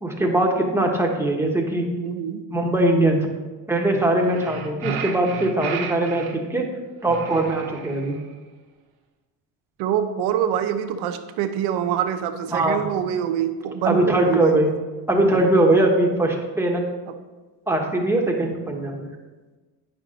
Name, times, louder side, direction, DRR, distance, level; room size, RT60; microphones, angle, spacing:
voice 1, 0.0-1.8 2.5-3.2 3.7-6.6 7.0-8.2 12.5-12.8 13.8-14.7 15.1-16.8 17.7-19.1, right 1 dB, 5° right, 0 dB, 1.4 m, -21 dB
voice 2, 2.0-2.4 9.8-14.5 17.1-17.2, right 9 dB, 90° right, 8 dB, 0.8 m, -25 dB
sound 1, 4.2-6.4 7.0-8.3, right 6 dB, 70° right, 1.3 m, -33 dB
9.0 x 6.2 x 3.9 m, 1.3 s
cardioid pair, 100°, 38 cm